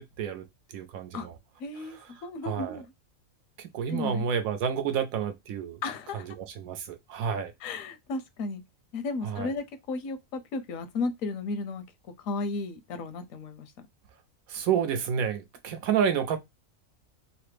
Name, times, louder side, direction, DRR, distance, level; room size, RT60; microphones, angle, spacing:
voice 1, 0.0-1.4 1.8-2.8 3.6-5.8 6.1-7.5 9.2-9.5 14.5-16.4, right 7 dB, 90° right, 1.1 m, -30 dB
voice 2, 1.6-2.8 3.9-4.2 5.8-6.3 7.6-8.6 8.9-11.8 12.2-13.7, left 3 dB, 80° left, 1.0 m, -34 dB
3.2 x 2.0 x 3.1 m
omnidirectional pair, 1.4 m